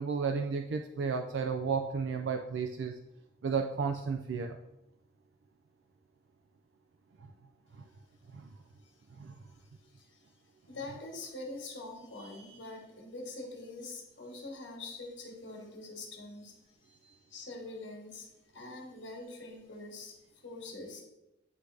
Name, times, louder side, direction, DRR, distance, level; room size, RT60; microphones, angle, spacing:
voice 1, 0.0-3.0 3.4-4.6 7.8-7.9 8.3-8.5 9.2-9.3, right 5 dB, 75° right, 5 dB, 0.4 m, -33 dB
voice 2, 9.8-10.2 10.7-16.8 17.3-18.3 18.5-20.1 20.4-21.0, left 2 dB, 80° left, 0 dB, 1.6 m, -44 dB
9.5 x 3.3 x 3.4 m, 0.93 s
head